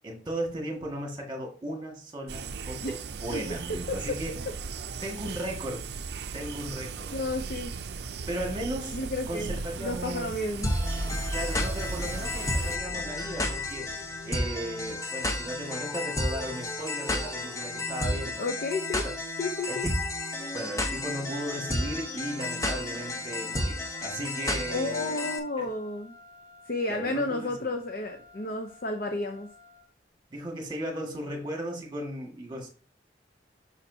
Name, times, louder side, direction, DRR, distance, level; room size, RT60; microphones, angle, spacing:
voice 1, 0.0-4.4 5.0-5.9 6.3-7.2 8.3-9.0 9.3-10.3 11.3-13.9 14.2-18.5 19.0-19.1 19.7-20.0 20.5-25.2 25.6-25.7 26.9-27.7 30.3-32.7, right 1 dB, 25° right, 1 dB, 1.8 m, -36 dB
sound 1, 2.3-12.8, right 5 dB, 65° right, 0.5 m, -38 dB
voice 2, 7.1-7.7 8.9-10.7 18.4-19.0 19.4-19.9 24.7-26.1 26.7-29.5, left 2 dB, 55° left, 5 dB, 0.7 m, -32 dB
sound 2, 10.6-25.4, left 1 dB, 20° left, 0.9 m, -32 dB
Wind instrument woodwind instrument, 21.3-30.0, left 2 dB, 40° left, 2.2 m, -54 dB
7.1 x 5.8 x 2.7 m, 0.40 s
head